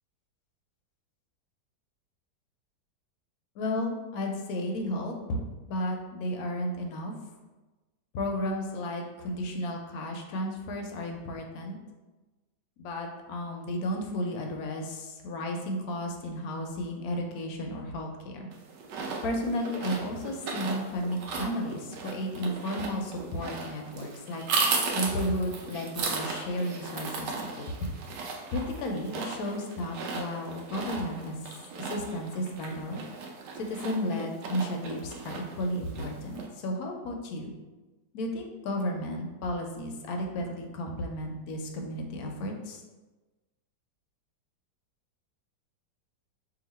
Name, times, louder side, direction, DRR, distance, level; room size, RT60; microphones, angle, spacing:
voice 1, 3.6-5.4 5.7-7.1 8.1-11.8 12.8-18.5 19.2-24.4 24.9-27.9 28.5-31.4 31.8-33.0 33.6-37.5 38.1-42.8, left 1 dB, 70° left, 2 dB, 1.0 m, -33 dB
sound 1, 18.5-36.5, right 4 dB, 80° right, 1.2 m, -36 dB
2.9 x 2.7 x 4.0 m, 1.2 s
omnidirectional pair, 1.8 m